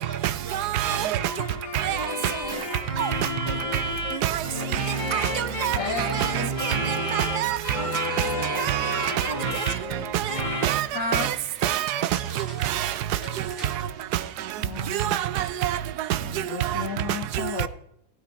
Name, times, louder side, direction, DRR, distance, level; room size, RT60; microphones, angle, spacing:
voice 1, 0.0-1.2 4.4-5.5 8.2-9.5 12.1-13.7, right 1 dB, 15° right, 2.5 m, -42 dB
voice 2, 0.5-1.2 1.7-2.1 3.0-3.1 4.2-4.4 4.7-4.8 5.1-6.4 6.7-7.6 7.9-8.3 8.6-9.3 10.1-10.3 10.6-10.9 11.1-11.3 11.6-12.0 12.6-12.9 14.9-15.8 16.6-16.8 17.6-17.7, right 12 dB, 85° right, 1.2 m, -26 dB
sound 1, 0.9-10.8, left 1 dB, 20° left, 1.9 m, -31 dB
voice 3, 5.7-6.5 10.9-11.3 14.6-15.2 16.2-17.7, left 3 dB, 60° left, 1.4 m, -32 dB
sound 2, 8.5-14.9, right 4 dB, 45° right, 2.4 m, -47 dB
18.0 x 6.6 x 4.5 m
omnidirectional pair, 1.7 m